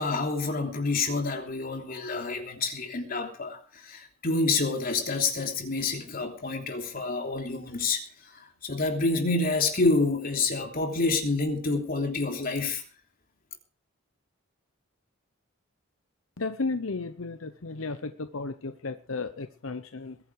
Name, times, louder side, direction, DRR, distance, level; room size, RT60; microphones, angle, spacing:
voice 1, 0.0-12.8, left 3 dB, 45° left, 3.1 m, -28 dB
voice 2, 16.4-20.2, left 3 dB, 85° left, 0.9 m, -34 dB
21.5 x 9.7 x 4.8 m
head